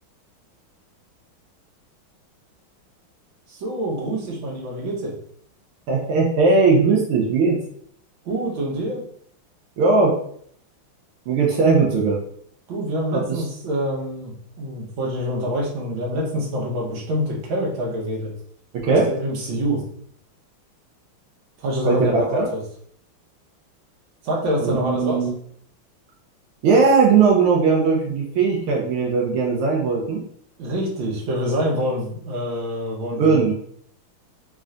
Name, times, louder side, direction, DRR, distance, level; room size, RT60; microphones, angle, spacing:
voice 1, 3.5-5.1 8.3-9.0 12.7-18.3 18.9-19.8 21.6-22.6 24.2-25.3 30.6-33.5, equal, 70° right, -3 dB, 1.8 m, -26 dB
voice 2, 5.9-7.6 9.8-10.1 11.3-12.2 13.1-13.4 18.7-19.1 21.8-22.5 24.6-25.3 26.6-30.2 33.1-33.5, right 4 dB, 90° right, -2 dB, 1.6 m, -18 dB
3.7 x 3.2 x 2.4 m, 0.63 s
omnidirectional pair, 2.3 m